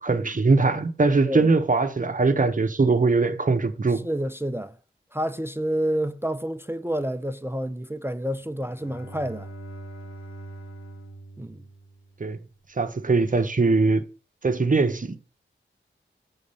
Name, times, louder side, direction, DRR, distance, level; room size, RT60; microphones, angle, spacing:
voice 1, 0.0-4.0 12.2-12.4 12.8-14.0 14.4-15.2, right 3 dB, 40° right, 0.8 m, -21 dB
voice 2, 4.0-4.7 5.1-9.5 11.4-11.6, right 1 dB, 10° right, 0.4 m, -29 dB
Bowed string instrument, 8.4-12.5, right 2 dB, 80° left, 2.1 m, -42 dB
7.0 x 3.9 x 5.4 m
wide cardioid pair, 70°, 21 cm